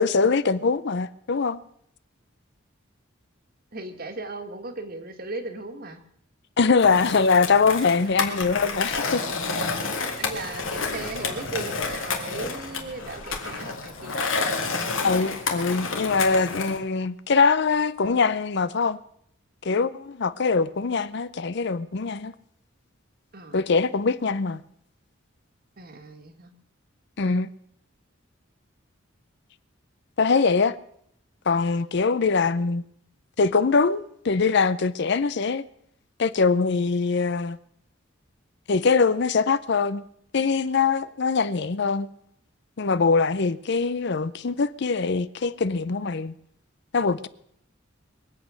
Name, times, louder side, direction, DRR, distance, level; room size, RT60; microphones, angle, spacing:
voice 1, 0.0-1.6 6.6-9.2 15.0-19.0 19.6-22.3 23.5-24.6 27.2-27.5 30.2-30.8 31.5-32.8 33.4-35.6 36.2-37.6 38.7-40.0 40.3-42.1 42.8-46.3 46.9-47.3, left 4 dB, 55° left, 0.6 m, -22 dB
voice 2, 3.7-6.0 8.0-8.1 10.2-14.3 23.3-23.7 25.8-26.5, right 2 dB, 50° right, 1.8 m, -37 dB
Skateboard, 6.8-16.8, left 4 dB, 75° left, 2.3 m, -30 dB
22.5 x 8.3 x 6.4 m
head